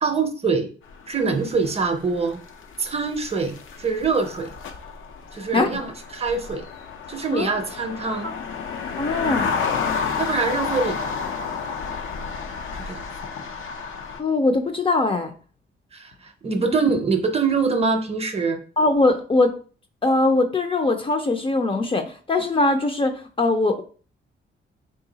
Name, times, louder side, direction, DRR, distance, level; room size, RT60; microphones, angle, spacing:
voice 1, 0.0-0.7 1.1-2.4 2.8-4.5 5.3-6.6 7.1-8.3 10.2-11.0 12.7-13.0 15.9-18.6, right 4 dB, 30° right, 6 dB, 0.6 m, -24 dB
sound 1, 0.9-14.2, left 5 dB, 85° left, 0.6 m, -31 dB
voice 2, 9.0-9.5 14.2-15.3 16.6-16.9 18.8-19.5 20.0-23.8, left 2 dB, 25° left, 6 dB, 0.4 m, -21 dB
3.8 x 2.4 x 3.9 m, 0.39 s
cardioid pair, 120°, 20 cm